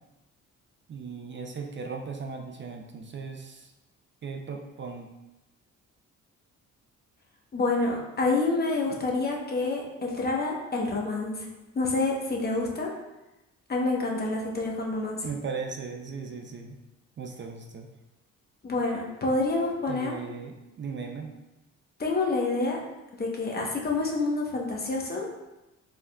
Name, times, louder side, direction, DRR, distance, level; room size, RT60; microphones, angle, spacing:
voice 1, 0.9-3.7 4.2-5.1 15.2-16.8 17.2-17.9 19.9-21.3, right 5 dB, 40° right, 4 dB, 0.5 m, -37 dB
voice 2, 7.5-11.5 11.7-12.9 13.7-15.3 18.6-20.2 22.0-22.8 23.2-25.3, left 3 dB, 30° left, -1 dB, 1.0 m, -28 dB
5.2 x 3.6 x 2.3 m, 1.0 s
cardioid pair, 90°, 30 cm